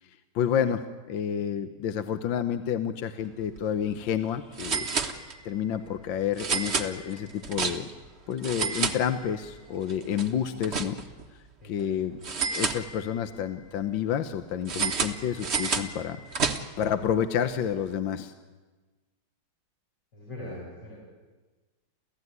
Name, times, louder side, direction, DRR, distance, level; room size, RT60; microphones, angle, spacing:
voice 1, 0.3-0.8 1.1-4.9 5.4-7.9 8.3-11.0 11.6-12.1 12.5-16.2 16.8-18.3, left 9 dB, 65° left, 10 dB, 1.6 m, -29 dB
sound 1, 3.4-3.6 3.9-4.0 4.6-5.6 6.4-8.1 8.4-9.6 9.9-11.3 12.2-13.3 14.7-16.9, right 5 dB, 35° right, 1.3 m, -30 dB
voice 2, 11.6-12.2 20.1-21.0, left 1 dB, 50° left, -4 dB, 6.6 m, -42 dB
28.5 x 15.5 x 9.5 m, 1.3 s
omnidirectional pair, 2.3 m